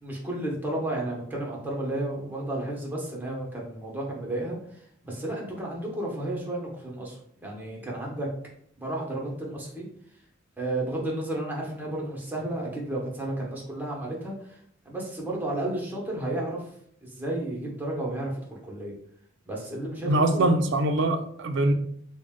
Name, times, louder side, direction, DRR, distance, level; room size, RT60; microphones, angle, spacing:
voice 1, 0.0-8.3 8.8-9.8 10.6-16.7 17.0-18.9 19.5-20.5 21.6-21.7, right 1 dB, 10° right, 0.9 m, -32 dB
voice 2, 20.1-21.7, right 2 dB, 65° right, 0.4 m, -23 dB
3.7 x 2.1 x 3.6 m
head